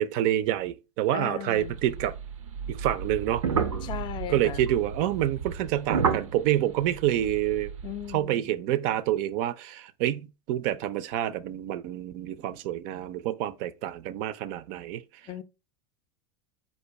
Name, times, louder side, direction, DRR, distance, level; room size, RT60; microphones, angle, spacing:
voice 1, 0.0-2.1 2.7-3.4 4.3-7.7 8.1-15.0, right 12 dB, 50° right, 0.5 m, -27 dB
voice 2, 1.1-1.8 3.8-4.7 7.8-8.5 15.3-15.4, left 10 dB, 30° left, 0.5 m, -37 dB
sound 1, 1.6-8.2, right 6 dB, 90° right, 0.6 m, -32 dB
4.2 x 2.5 x 4.6 m
hypercardioid pair, 105°, 16 cm